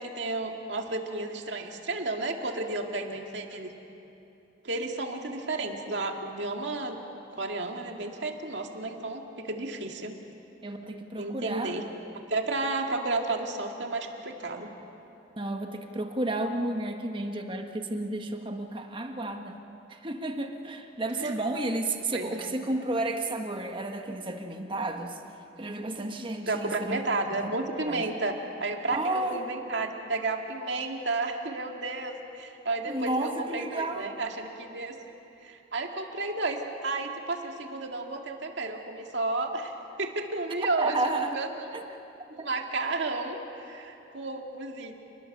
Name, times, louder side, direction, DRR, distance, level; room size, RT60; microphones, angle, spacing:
voice 1, 0.0-3.7 4.6-7.0 7.3-10.1 11.2-11.8 12.3-14.7 21.2-21.3 22.1-22.5 26.5-29.0 29.3-34.9 35.4-41.5 42.3-44.9, right 2 dB, 70° right, 2 dB, 2.2 m, -32 dB
voice 2, 10.6-11.8 15.4-19.6 19.9-25.2 25.6-27.0 27.4-27.5 27.9-28.0 28.9-29.4 32.8-34.1 40.8-41.3 41.7-41.8 42.4-42.5, right 2 dB, 30° right, 4 dB, 1.4 m, -32 dB
28.5 x 21.0 x 6.8 m, 2.9 s
head